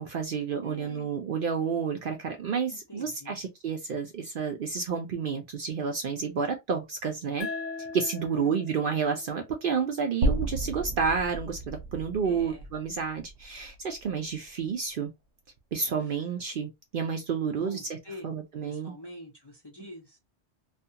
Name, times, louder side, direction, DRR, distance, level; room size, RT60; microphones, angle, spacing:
voice 1, 0.0-7.5 7.8-15.1 15.7-18.0 18.2-18.9, right 6 dB, 60° right, 0.6 m, -30 dB
voice 2, 0.6-1.1 2.7-3.4 8.2-8.5 12.2-12.7 17.6-18.3 18.6-20.2, left 1 dB, 30° left, 0.6 m, -45 dB
sound 1, 7.4-10.6, left 4 dB, 85° left, 0.9 m, -41 dB
sound 2, 10.2-14.4, right 1 dB, 85° right, 0.9 m, -33 dB
2.4 x 2.3 x 2.7 m
omnidirectional pair, 1.2 m